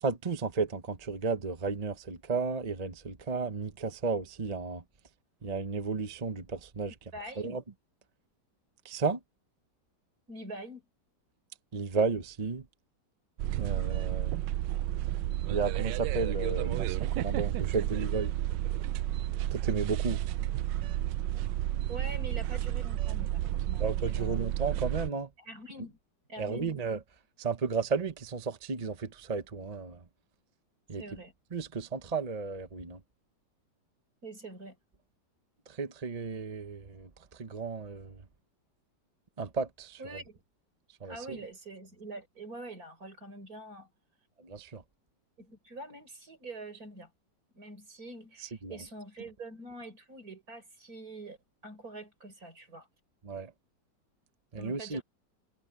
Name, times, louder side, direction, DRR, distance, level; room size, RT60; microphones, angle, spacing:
voice 1, 0.0-4.8 5.4-6.9 7.4-7.6 8.8-9.2 11.7-12.7 13.5-14.3 15.5-18.3 19.5-20.2 23.8-25.3 26.4-27.0 27.4-30.0 30.9-31.0 31.5-33.0 35.7-38.2 39.4-40.0 41.0-41.4 44.4-44.8 48.6-48.8 53.2-53.5 54.5-55.0, right 4 dB, 30° right, 0.7 m, -33 dB
voice 2, 7.1-7.6 10.3-10.9 21.9-24.5 25.4-26.0 26.3-26.8 31.0-31.3 34.2-34.8 40.0-40.4 41.0-43.9 45.4-47.1 47.5-51.4 51.6-52.9 54.6-55.0, right 2 dB, 50° right, 5.8 m, -45 dB
sound 1, 13.4-25.1, right 13 dB, 80° right, 1.2 m, -31 dB
omnidirectional pair, 2.0 m